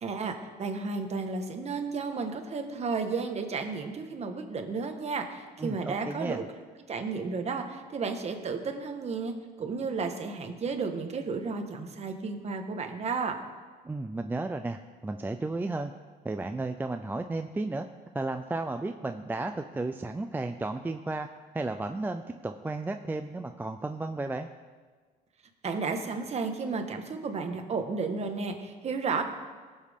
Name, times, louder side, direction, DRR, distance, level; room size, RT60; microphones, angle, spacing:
voice 1, 0.0-6.4 6.9-9.3 9.6-13.4 25.6-29.2, right 4 dB, 40° right, 5 dB, 1.4 m, -33 dB
voice 2, 5.6-6.4 13.8-15.9 16.2-17.9 18.1-21.3 21.5-24.5, right 2 dB, 10° right, 6 dB, 0.4 m, -33 dB
18.5 x 7.4 x 3.6 m, 1.4 s
cardioid pair, 110°, 17 cm